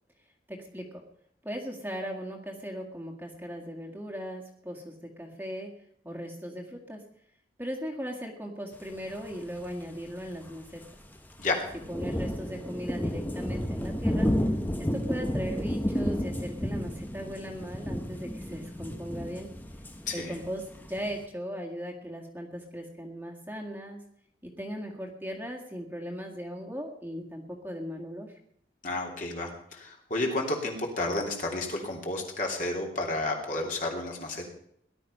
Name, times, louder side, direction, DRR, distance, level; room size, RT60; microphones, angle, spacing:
voice 1, 0.5-1.0 1.4-5.7 6.0-7.0 7.6-10.8 11.9-14.3 14.8-19.5 20.1-24.0 24.4-28.4, equal, 10° right, 0 dB, 1.9 m, -38 dB
sound 1, 9.6-9.7 9.9-10.0 10.3-10.5 10.8-11.2 11.6-21.2, equal, 10° left, 1.0 m, -32 dB
voice 2, 20.1-20.4 28.8-34.4, left 2 dB, 45° left, 0 dB, 3.2 m, -31 dB
18.0 x 11.5 x 5.6 m, 0.70 s
head